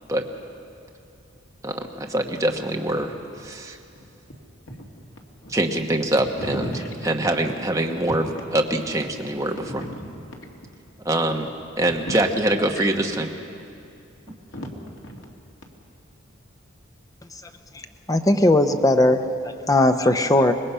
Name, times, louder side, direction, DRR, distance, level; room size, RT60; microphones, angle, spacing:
voice 1, 1.6-3.1 3.4-3.8 5.5-6.7 7.0-8.2 8.5-9.8 11.0-11.5 11.8-13.3, right 1 dB, 15° right, 2 dB, 1.2 m, -24 dB
voice 2, 4.7-5.1 5.4-5.6 6.1-7.1 7.4-7.5 9.5-10.6 11.8-12.4 12.8-12.9 14.5-15.2, equal, 80° left, 0 dB, 2.6 m, -36 dB
voice 3, 18.1-20.5, left 1 dB, 15° left, 7 dB, 0.8 m, -18 dB
25.0 x 20.0 x 5.6 m, 2.5 s
head